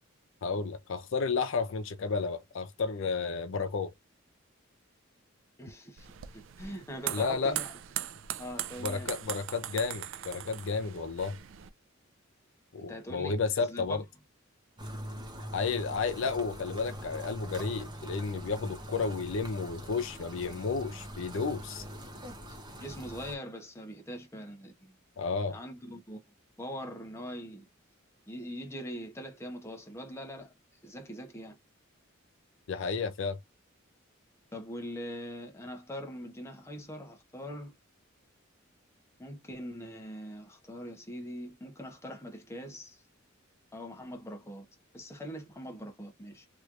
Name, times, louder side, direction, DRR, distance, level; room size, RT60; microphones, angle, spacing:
voice 1, 0.4-3.9 7.1-7.6 8.8-11.4 12.7-14.0 15.5-21.8 25.2-25.6 32.7-33.4, left 4 dB, 70° left, 0.5 m, -32 dB
voice 2, 5.6-6.1 6.3-7.7 8.4-9.1 12.8-14.0 22.8-24.9 25.5-26.2 26.6-27.7 28.3-30.5 30.8-31.6 32.8-33.0 34.5-37.8 39.2-43.0 43.7-44.7 44.9-46.5, equal, 15° left, 1.0 m, -42 dB
sound 1, 6.0-11.7, right 11 dB, 70° right, 0.4 m, -40 dB
sound 2, 14.8-23.4, equal, 20° right, 1.0 m, -43 dB
3.1 x 3.0 x 2.5 m
head